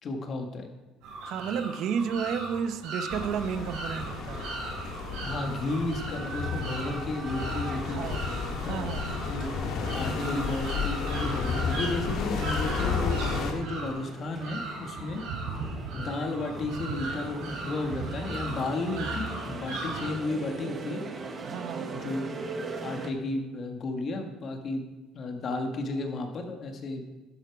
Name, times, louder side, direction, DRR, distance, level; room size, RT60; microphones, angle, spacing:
voice 1, 0.0-0.7 5.2-8.0 8.6-9.5 9.9-15.2 15.9-21.0 21.9-22.4 22.8-24.8 25.1-27.0, left 2 dB, 45° left, 1.6 m, -33 dB
sound 1, 1.0-20.1, right 2 dB, 85° right, 4.4 m, -38 dB
voice 2, 1.2-4.5 7.9-8.3 8.6-9.3 21.4-22.0, right 7 dB, 60° right, 0.8 m, -32 dB
sound 2, 3.1-13.5, left 5 dB, 60° left, 1.8 m, -32 dB
sound 3, 3.9-23.1, right 3 dB, 30° right, 1.2 m, -42 dB
12.0 x 8.1 x 4.7 m
cardioid pair, 110°, 0 cm